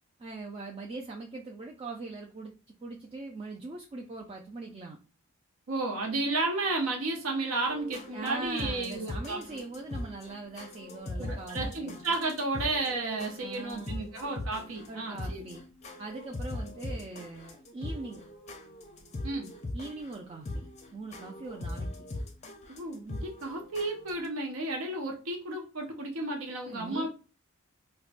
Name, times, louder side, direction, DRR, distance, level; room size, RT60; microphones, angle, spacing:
voice 1, 0.2-2.5 2.8-5.0 8.1-12.0 13.4-14.0 14.9-15.6 16.0-18.2 19.7-22.1 26.7-27.1, right 3 dB, 25° right, 0 dB, 0.3 m, -41 dB
voice 2, 5.7-9.6 11.2-15.4 19.2-19.5 22.7-27.1, right 2 dB, 75° right, 1 dB, 0.6 m, -32 dB
sound 1, 7.7-24.3, left 1 dB, 30° left, 0.5 m, -40 dB
4.6 x 2.1 x 2.4 m, 0.34 s
head